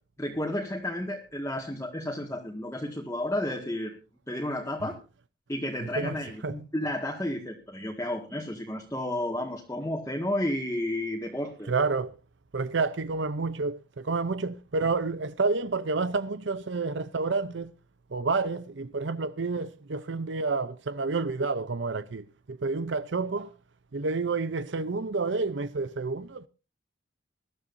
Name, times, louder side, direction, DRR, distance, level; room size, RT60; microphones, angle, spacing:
voice 1, 0.2-3.9 4.3-5.0 5.5-11.7, left 1 dB, 15° left, 1.8 m, -32 dB
voice 2, 5.8-6.2 6.4-6.6 11.7-12.1 12.5-17.7 18.1-23.5 23.9-26.5, right 4 dB, 65° right, 0.6 m, -29 dB
21.5 x 12.5 x 2.6 m
head